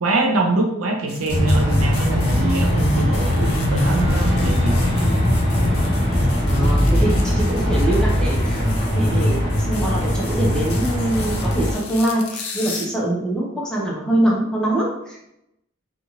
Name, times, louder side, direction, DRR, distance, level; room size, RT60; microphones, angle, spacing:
voice 1, 0.0-4.9, right 1 dB, 85° right, 2 dB, 0.5 m, -23 dB
sound 1, 1.1-12.9, left 5 dB, 85° left, 0.5 m, -37 dB
sound 2, 1.3-11.7, equal, 35° right, 1.2 m, -20 dB
voice 2, 6.4-15.3, right 1 dB, 5° left, -5 dB, 0.6 m, -24 dB
2.7 x 2.4 x 2.9 m, 0.82 s
head